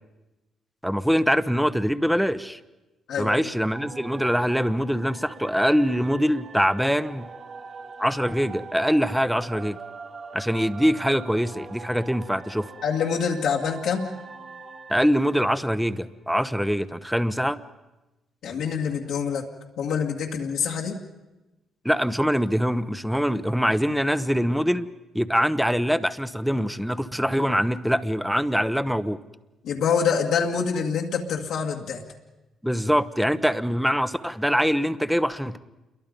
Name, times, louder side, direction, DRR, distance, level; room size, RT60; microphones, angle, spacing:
voice 1, 0.8-2.6 3.2-7.3 8.0-9.8 10.3-12.7 14.9-17.6 21.8-24.9 25.1-29.2 32.6-35.6, equal, ahead, 13 dB, 0.9 m, -23 dB
voice 2, 3.1-3.5 12.8-14.1 18.4-19.5 19.8-21.0 29.6-32.0, left 6 dB, 80° left, -1 dB, 2.1 m, -26 dB
sound 1, 3.7-16.3, right 4 dB, 50° right, 2.9 m, -43 dB
28.5 x 22.5 x 5.3 m, 1.0 s
cardioid pair, 90°, 0 cm